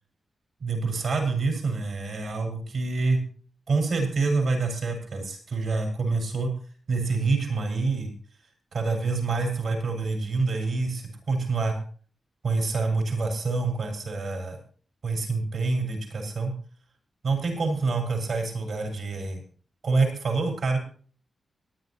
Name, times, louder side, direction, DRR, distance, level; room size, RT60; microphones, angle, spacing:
voice 1, 0.6-3.2 3.7-6.5 6.9-8.1 8.7-11.7 12.4-14.6 15.0-16.5 17.2-19.4 19.8-20.8, right 3 dB, 65° right, 3 dB, 5.8 m, -26 dB
24.0 x 9.8 x 3.0 m, 0.43 s
wide cardioid pair, 160°, 0 cm